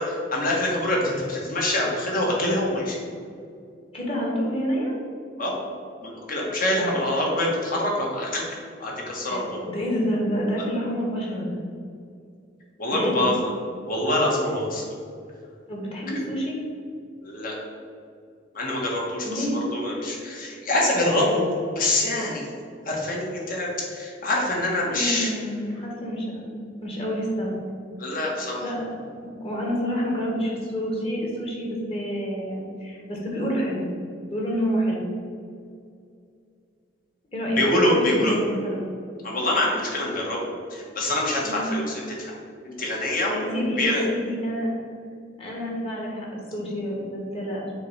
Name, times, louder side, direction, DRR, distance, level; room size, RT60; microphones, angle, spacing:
voice 1, 0.0-3.0 5.4-5.5 6.0-8.4 8.8-9.6 12.8-13.5 13.9-14.8 16.1-16.2 17.2-17.5 18.5-19.5 19.7-21.4 21.7-22.5 22.8-25.3 28.0-28.6 37.6-38.3 39.2-40.4 40.7-42.3 42.6-44.0, left 1 dB, 50° left, -2 dB, 1.4 m, -25 dB
voice 2, 3.9-4.9 6.7-6.9 9.2-9.4 9.7-11.6 12.9-13.3 15.7-16.6 19.2-19.6 24.9-26.5 26.8-27.6 28.6-28.9 29.2-33.8 34.3-35.0 37.3-38.9 41.4-41.7 43.3-44.7 45.4-47.8, equal, 30° left, -3 dB, 1.5 m, -28 dB
6.7 x 3.1 x 5.6 m, 2.3 s
head